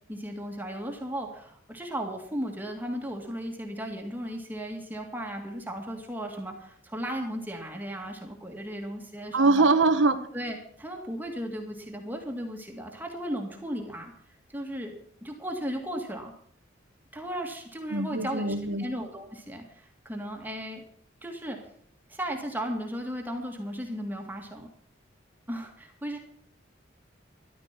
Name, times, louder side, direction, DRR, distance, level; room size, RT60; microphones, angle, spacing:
voice 1, 0.1-9.7 10.3-14.1 14.5-14.9 15.2-16.3 17.1-18.5 18.8-20.8 21.2-21.6 22.1-24.7 25.5-26.2, equal, 10° right, 2 dB, 2.1 m, -35 dB
voice 2, 9.3-10.2 17.9-18.8, right 3 dB, 85° right, 9 dB, 1.4 m, -22 dB
14.0 x 11.5 x 5.9 m, 0.63 s
head